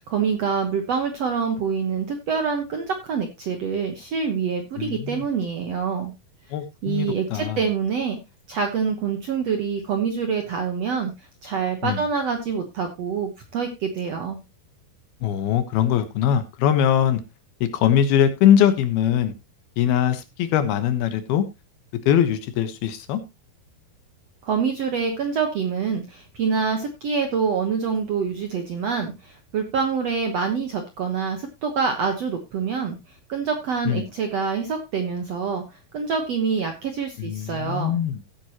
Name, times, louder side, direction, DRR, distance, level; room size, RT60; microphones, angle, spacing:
voice 1, 0.1-6.1 6.8-8.2 8.5-11.1 11.4-14.4 24.4-33.0 33.3-38.0, right 6 dB, 65° right, 1.6 m, -26 dB
voice 2, 4.8-5.2 6.5-7.6 11.8-12.0 15.2-17.2 17.6-19.3 19.8-21.4 22.1-23.2 33.9-34.0 37.2-38.2, left 9 dB, 75° left, 3.0 m, -21 dB
15.5 x 8.4 x 3.0 m
omnidirectional pair, 4.6 m